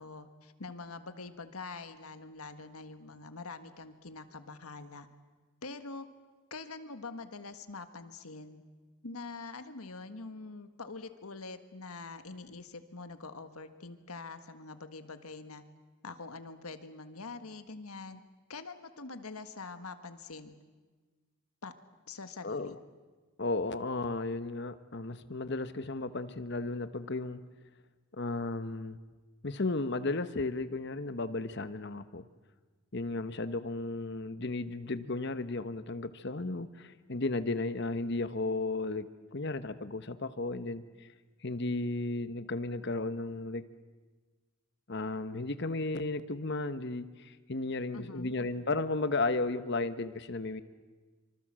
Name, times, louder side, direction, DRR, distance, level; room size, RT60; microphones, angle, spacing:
voice 1, 0.0-5.1 5.6-6.1 6.5-8.6 9.0-15.6 16.0-18.2 18.5-20.5 21.6-21.7 22.1-22.7 47.9-48.3, left 3 dB, 85° left, 9 dB, 1.6 m, -44 dB
voice 2, 22.4-22.8 23.4-27.4 28.2-29.0 29.4-32.2 32.9-41.1 41.4-43.6 44.9-50.6, left 2 dB, 50° left, 12 dB, 1.0 m, -34 dB
25.0 x 25.0 x 7.6 m, 1.4 s
head